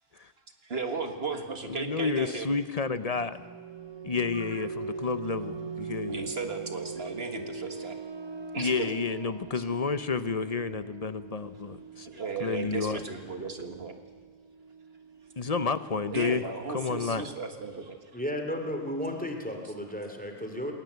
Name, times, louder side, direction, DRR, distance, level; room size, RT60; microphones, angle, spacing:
voice 1, 0.6-2.6 4.3-4.6 6.1-8.0 8.5-8.9 9.5-9.6 12.0-13.9 16.1-18.1, right 4 dB, 50° right, 6 dB, 1.8 m, -35 dB
voice 2, 1.7-3.4 4.0-6.1 8.6-13.0 15.4-16.4 16.7-17.2, left 4 dB, 35° left, 13 dB, 0.7 m, -30 dB
sound 1, 3.1-15.6, right 4 dB, 25° right, 0.7 m, -42 dB
voice 3, 18.1-20.7, equal, 5° left, 4 dB, 2.6 m, -34 dB
21.0 x 18.5 x 8.1 m, 1.5 s
omnidirectional pair, 1.3 m